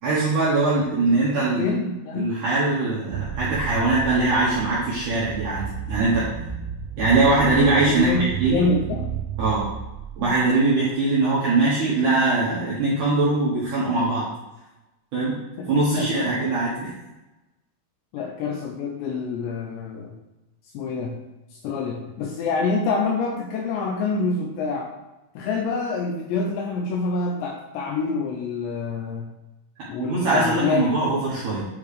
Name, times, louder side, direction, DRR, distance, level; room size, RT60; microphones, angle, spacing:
voice 1, 0.0-1.7 2.2-6.2 7.0-8.1 8.4-8.7 9.4-9.6 10.2-14.2 15.1-15.3 15.7-16.9 30.0-31.6, right 3 dB, 70° right, -8 dB, 1.9 m, -21 dB
voice 2, 1.6-2.3 7.8-9.1 15.6-15.7 16.0-16.3 18.1-20.2 20.7-21.2 21.6-24.9 25.4-29.3 29.9-31.2, left 4 dB, 85° left, 1 dB, 2.6 m, -26 dB
sound 1, 3.1-10.6, right 8 dB, 90° right, 2.4 m, -32 dB
9.5 x 4.0 x 3.4 m, 1.0 s
omnidirectional pair, 5.6 m